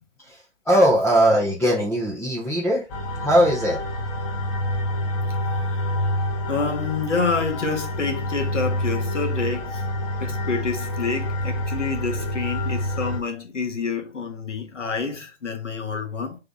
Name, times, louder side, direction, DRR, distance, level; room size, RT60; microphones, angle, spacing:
voice 1, 0.7-2.9 3.2-3.8, equal, 5° left, 0.6 m, -19 dB
sound 1, 2.9-13.2, left 1 dB, 30° left, 1.0 m, -27 dB
voice 2, 6.5-9.8 10.2-16.4, left 4 dB, 85° left, 1.4 m, -28 dB
3.7 x 3.4 x 3.8 m
hypercardioid pair, 130°, 36 cm